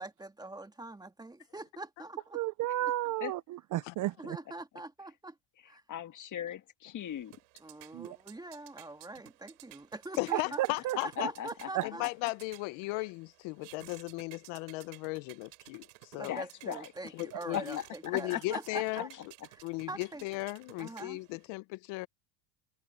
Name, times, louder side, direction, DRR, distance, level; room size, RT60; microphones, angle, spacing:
voice 1, 0.0-2.4 4.2-5.4 5.7-5.8 7.6-10.6 11.0-12.1 13.0-13.1 16.2-19.1 19.5-20.2 20.8-21.2, right 2 dB, 10° right, 2.0 m, -43 dB
voice 2, 2.3-4.4 7.9-8.2 10.3-11.0 11.7-11.8 16.7-16.8 17.3-17.4, right 15 dB, 40° right, 0.5 m, -33 dB
voice 3, 5.9-7.3 11.2-12.1 16.3-16.9 17.5-18.4 18.7-18.8, left 10 dB, 35° left, 1.8 m, -38 dB
sound 1, 7.0-21.5, right 30 dB, 80° right, 6.5 m, -56 dB
voice 4, 10.2-11.3 11.8-16.4 17.1-19.1 19.6-22.1, left 23 dB, 65° left, 1.0 m, -36 dB
supercardioid pair, 120°, 50 cm